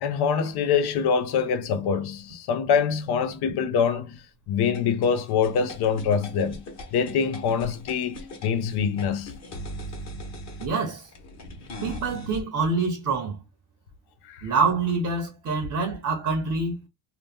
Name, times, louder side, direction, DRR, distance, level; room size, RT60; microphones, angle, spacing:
voice 1, 0.0-4.2 4.5-6.6 6.9-8.2 8.4-9.3 14.2-14.5, left 6 dB, 60° left, 0.8 m, -24 dB
sound 1, 4.7-12.4, left 1 dB, 35° left, 1.3 m, -40 dB
voice 2, 10.6-11.1 11.8-13.4 14.4-16.8, right 4 dB, 45° right, 0.9 m, -26 dB
2.9 x 2.1 x 3.5 m
supercardioid pair, 100°, 44 cm